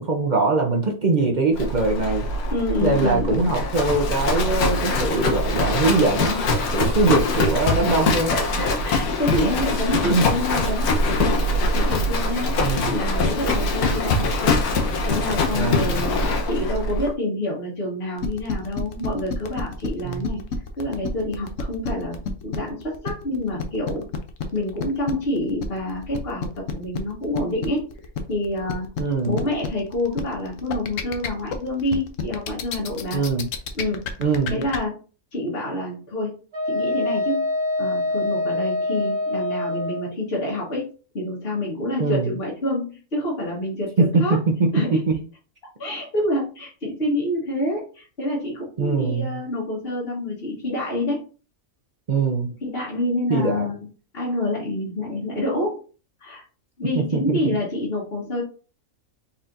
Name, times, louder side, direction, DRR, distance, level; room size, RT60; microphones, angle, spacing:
voice 1, 0.0-2.2 2.8-8.3 9.3-9.5 10.0-10.3 12.6-12.9 15.5-16.0 20.0-20.3 29.0-29.4 33.1-33.5 34.2-34.6 42.0-42.3 44.0-44.2 44.6-44.7 45.1-45.2 48.8-49.4 52.1-52.5 53.3-53.7 56.9-57.4, right 3 dB, 45° right, 2 dB, 0.6 m, -22 dB
Livestock farm animals working animals, 1.5-17.1, left 2 dB, 85° left, 1.4 m, -23 dB
voice 2, 2.5-3.6 8.3-11.4 11.7-14.5 15.1-20.4 20.7-24.1 24.5-27.9 28.3-28.9 29.3-33.2 33.7-34.1 34.5-34.9 35.3-36.3 36.7-37.5 37.8-40.9 41.1-44.4 44.7-45.0 45.8-51.2 52.6-53.8 54.1-55.8 56.2-56.4 56.8-58.4, left 1 dB, 45° left, -5 dB, 1.6 m, -27 dB
sound 1, 18.2-34.8, left 6 dB, 65° left, 1.0 m, -30 dB
Wind instrument woodwind instrument, 36.5-40.1, left 2 dB, 20° right, 1.3 m, -25 dB
4.3 x 4.1 x 2.6 m, 0.36 s
omnidirectional pair, 1.6 m